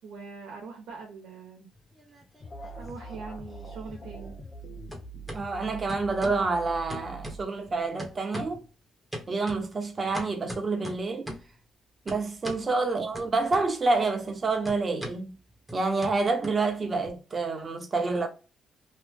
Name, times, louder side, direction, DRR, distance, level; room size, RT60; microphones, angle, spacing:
voice 1, 0.0-1.7 2.7-4.4 12.4-12.6, right 4 dB, 85° right, 1.0 m, -42 dB
sound 1, 1.8-2.7 3.0-4.6 4.9-5.4 5.9-6.5 6.9-7.7 8.0-8.7 9.1-11.6 12.1-12.7 13.1-14.0 14.2-17.1, equal, 5° right, 1.1 m, -41 dB
sound 2, 2.4-7.9, right 2 dB, 45° left, 0.8 m, -43 dB
voice 2, 5.3-8.6 9.3-11.3 12.0-15.3 15.7-18.3, right 3 dB, 35° right, 1.0 m, -28 dB
3.1 x 2.4 x 3.5 m
cardioid pair, 90°, 0 cm